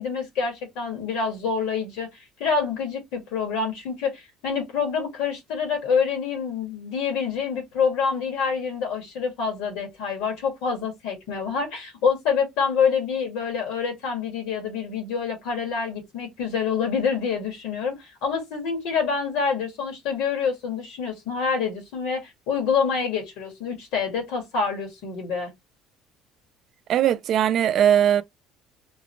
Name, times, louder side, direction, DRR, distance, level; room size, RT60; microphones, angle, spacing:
voice 1, 0.0-2.1 2.4-25.5, left 6 dB, 85° left, 1.6 m, -26 dB
voice 2, 26.9-28.2, right 10 dB, 50° right, 0.3 m, -19 dB
3.8 x 2.0 x 3.1 m
cardioid pair, 130°, 0 cm